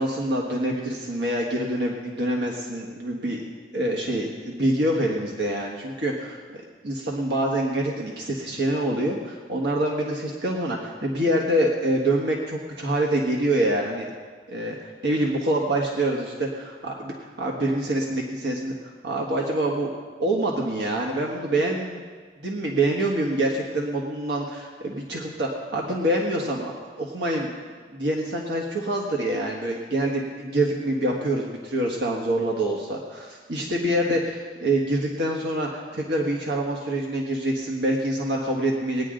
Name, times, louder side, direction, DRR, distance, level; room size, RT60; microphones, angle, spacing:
voice 1, 0.0-3.4 3.7-6.6 6.8-14.1 14.5-18.7 19.0-19.9 20.2-22.0 22.4-27.5 27.9-39.1, right 1 dB, 85° right, -2 dB, 1.5 m, -26 dB
19.0 x 10.0 x 3.8 m, 1.5 s
head